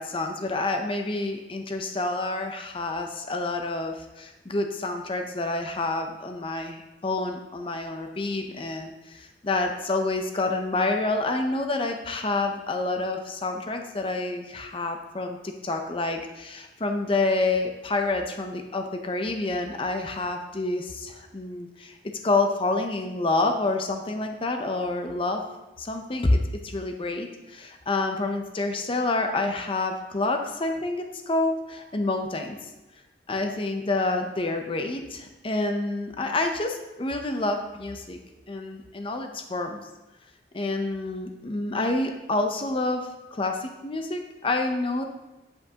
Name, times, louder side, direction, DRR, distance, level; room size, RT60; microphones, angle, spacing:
voice 1, 0.0-22.0 22.2-25.4 25.8-26.4 26.6-32.7 33.3-38.2 38.5-39.8 40.5-45.0, left 2 dB, 30° left, 4 dB, 0.6 m, -28 dB
8.6 x 7.6 x 2.9 m, 1.0 s
head